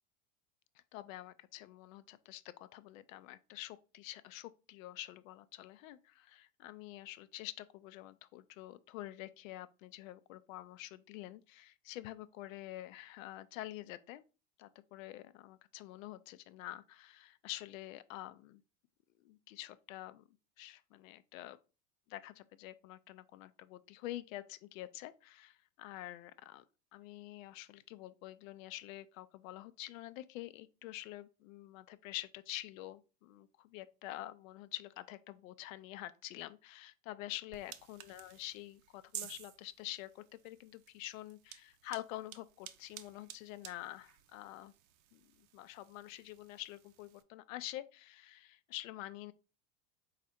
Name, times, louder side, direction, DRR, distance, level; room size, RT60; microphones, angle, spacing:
voice 1, 0.9-14.2 14.6-18.6 19.2-20.2 20.6-21.6 22.1-26.6 26.9-44.7 45.1-49.3, left 15 dB, 75° left, 0.5 m, -47 dB
sound 1, 37.5-47.2, right 12 dB, 65° right, 0.6 m, -53 dB
4.0 x 2.5 x 4.1 m
hypercardioid pair, 95°, 40 cm